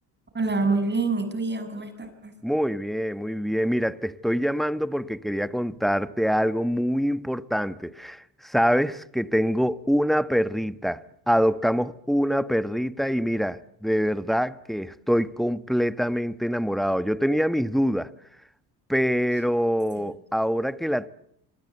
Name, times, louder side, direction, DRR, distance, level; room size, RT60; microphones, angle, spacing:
voice 1, 0.3-2.3 20.0-20.1, right 3 dB, 25° right, 6.7 m, -26 dB
voice 2, 2.4-18.1 18.9-21.1, equal, ahead, 1.4 m, -25 dB
26.0 x 24.5 x 8.0 m
supercardioid pair, 75°, 41 cm